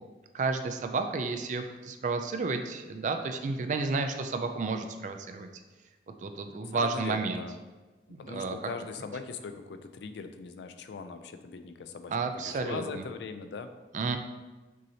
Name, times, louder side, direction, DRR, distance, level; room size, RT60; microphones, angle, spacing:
voice 1, 0.3-5.5 6.2-7.4 8.1-8.6 12.1-13.0 13.9-14.2, right 4 dB, 45° right, 7 dB, 0.3 m, -31 dB
voice 2, 6.7-7.6 8.2-13.7, left 5 dB, 70° left, 8 dB, 0.3 m, -40 dB
6.2 x 2.8 x 2.7 m, 1.2 s
head